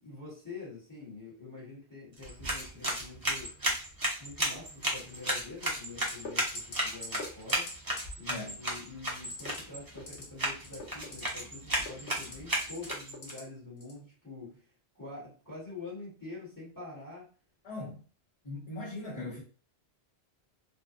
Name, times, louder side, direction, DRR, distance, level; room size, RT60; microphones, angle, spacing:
voice 1, 0.0-3.5 4.2-7.7 8.2-14.7 14.9-17.3, left 3 dB, 20° left, 1.4 m, -46 dB
sound 1, 2.1-13.3, right 1 dB, 25° right, 0.6 m, -34 dB
sound 2, 6.1-6.3 6.6-6.8 7.0-7.2 7.5-7.7 8.0-8.1 9.3-9.6 9.9-10.2 10.6-11.3 11.7-12.3 12.7-13.4 13.8-14.0, left 3 dB, 60° left, 1.0 m, -42 dB
voice 2, 17.6-18.0 18.4-19.4, left 2 dB, 35° left, 1.0 m, -39 dB
2.7 x 2.4 x 2.4 m
omnidirectional pair, 1.1 m